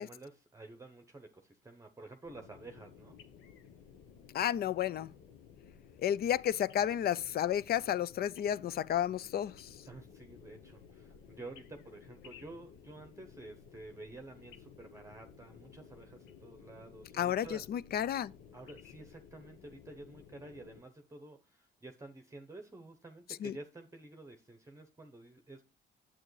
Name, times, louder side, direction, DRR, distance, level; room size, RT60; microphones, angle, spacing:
voice 1, 0.0-3.2 9.9-17.6 18.5-25.6, right 2 dB, 15° right, 0.8 m, -51 dB
sound 1, 2.2-20.8, left 7 dB, 85° left, 0.9 m, -56 dB
voice 2, 4.3-5.1 6.0-9.7 17.2-18.3 23.4-23.5, left 10 dB, 50° left, 0.4 m, -32 dB
8.9 x 7.5 x 3.2 m
cardioid pair, 90°, 20 cm